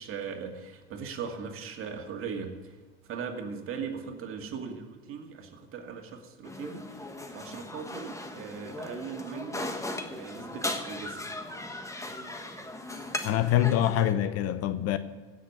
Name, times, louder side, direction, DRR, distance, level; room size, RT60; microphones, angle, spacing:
voice 1, 0.0-2.8 3.1-7.1 7.3-9.6 10.1-11.3, right 6 dB, 45° right, 2.3 m, -39 dB
sound 1, 6.4-14.1, left 1 dB, 10° left, 1.4 m, -38 dB
voice 2, 13.2-15.0, left 11 dB, 50° left, 0.9 m, -25 dB
16.0 x 6.8 x 8.0 m
hypercardioid pair, 90°, 31 cm